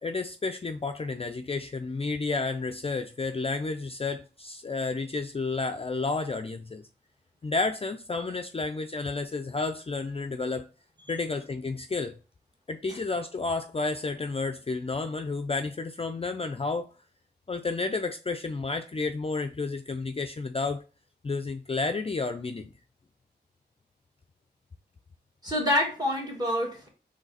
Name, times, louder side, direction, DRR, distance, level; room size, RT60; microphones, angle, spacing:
voice 1, 0.0-6.8 7.4-10.7 11.1-12.1 12.7-16.9 17.5-20.8 21.2-22.7, left 3 dB, 30° left, 0.4 m, -31 dB
voice 2, 25.4-26.9, left 1 dB, 20° right, 1.9 m, -27 dB
3.9 x 3.2 x 4.0 m
cardioid pair, 40°, 18 cm